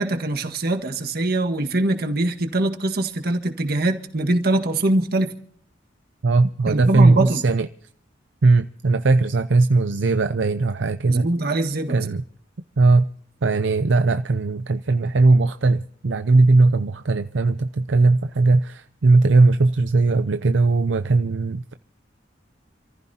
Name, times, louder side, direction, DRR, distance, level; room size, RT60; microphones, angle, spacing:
voice 1, 0.0-5.3 6.7-7.4 11.1-12.1, right 2 dB, 55° right, 1.7 m, -23 dB
voice 2, 6.2-7.7 8.4-11.3 11.9-12.2 12.8-13.1 13.4-21.7, right 3 dB, 75° right, 0.6 m, -18 dB
28.5 x 15.0 x 2.8 m
head